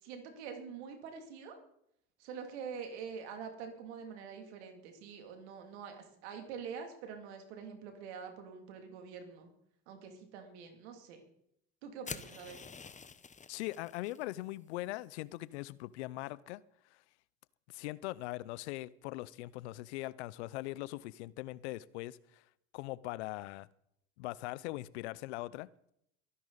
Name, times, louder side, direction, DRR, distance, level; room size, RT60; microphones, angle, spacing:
voice 1, 0.0-1.6 2.2-9.5 9.9-11.2 11.8-12.6, right 6 dB, 85° right, 2.8 m, -45 dB
sound 1, 12.0-14.2, left 5 dB, 20° left, 0.9 m, -47 dB
voice 2, 13.5-16.6 17.7-22.4 22.7-23.7 24.2-25.7, left 18 dB, 85° left, 0.6 m, -41 dB
22.5 x 10.5 x 4.0 m
hypercardioid pair, 70°, 33 cm